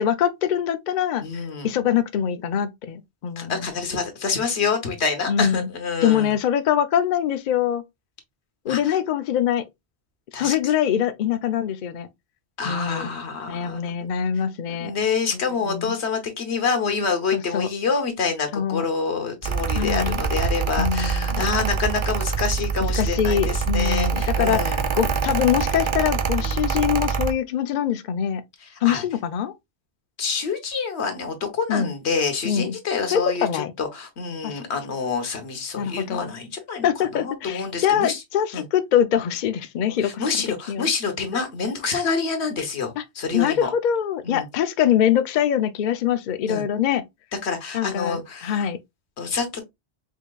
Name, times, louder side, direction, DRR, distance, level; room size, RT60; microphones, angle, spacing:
voice 1, 0.0-3.7 5.3-5.7 6.0-7.8 8.6-9.6 10.4-12.1 12.6-13.1 13.5-14.9 15.4-16.0 17.3-17.7 18.5-18.8 19.7-20.2 20.8-21.4 23.0-28.4 28.8-29.5 31.7-31.9 32.4-32.7 33.1-33.7 34.4-34.6 35.8-36.3 36.8-40.9 43.0-43.1 43.3-47.0 47.7-48.8, left 9 dB, 55° left, 0.6 m, -24 dB
voice 2, 1.2-1.7 3.4-6.3 8.7-8.9 10.3-10.6 12.6-13.8 14.8-24.8 26.4-26.7 28.8-29.0 30.2-36.9 37.1-38.2 38.5-38.6 40.0-43.7 44.2-44.5 46.5-46.6 47.4-48.7 49.2-49.6, left 5 dB, 85° left, 1.3 m, -27 dB
Mechanical fan, 19.4-27.3, right 6 dB, 45° right, 0.4 m, -25 dB
5.1 x 2.8 x 2.3 m
omnidirectional pair, 1.1 m